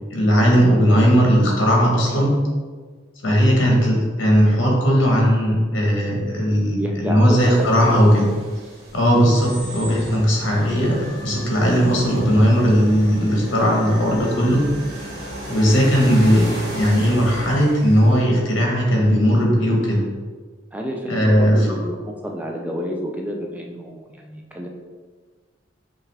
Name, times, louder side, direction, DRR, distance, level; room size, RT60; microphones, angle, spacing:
voice 1, 0.1-2.4 3.2-8.3 8.9-14.6 15.5-16.5 16.8-20.0 21.1-21.8, equal, 65° left, -1 dB, 1.1 m, -17 dB
voice 2, 6.7-8.2 20.7-24.7, equal, 5° right, 0 dB, 0.4 m, -29 dB
sound 1, 7.4-18.2, right 1 dB, 70° right, 1.2 m, -37 dB
sound 2, 9.4-17.6, right 1 dB, 30° left, 1.2 m, -37 dB
5.6 x 2.5 x 3.3 m, 1.5 s
head